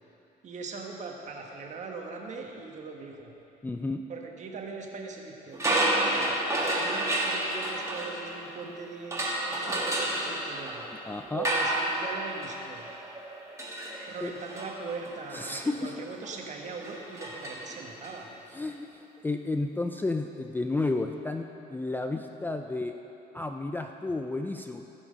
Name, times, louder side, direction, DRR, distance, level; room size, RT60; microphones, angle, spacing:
voice 1, 0.4-3.3 4.1-10.8 11.3-12.9 14.1-18.3, right 4 dB, 45° right, 1 dB, 1.4 m, -40 dB
voice 2, 3.6-4.0 11.0-11.5 14.2-14.3 15.3-15.9 18.5-22.9 23.3-24.9, left 2 dB, 10° left, 5 dB, 0.4 m, -32 dB
sound 1, 5.5-8.6 9.1-18.1, right 1 dB, 15° right, 1.9 m, -31 dB
16.5 x 6.1 x 5.2 m, 2.9 s
cardioid pair, 110°, 17 cm